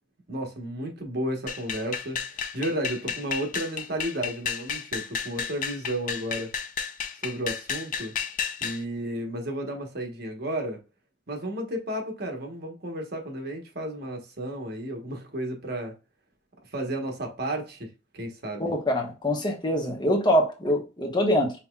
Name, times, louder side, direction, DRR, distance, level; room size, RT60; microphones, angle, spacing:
voice 1, 0.3-6.5 7.2-8.1 8.6-10.8 11.3-15.9 16.7-17.9 18.1-18.7, right 1 dB, 55° right, 1.2 m, -33 dB
sound 1, 1.5-8.8, left 7 dB, 45° left, 0.5 m, -32 dB
voice 2, 18.6-21.5, equal, 25° left, 1.0 m, -24 dB
5.5 x 3.0 x 2.3 m
head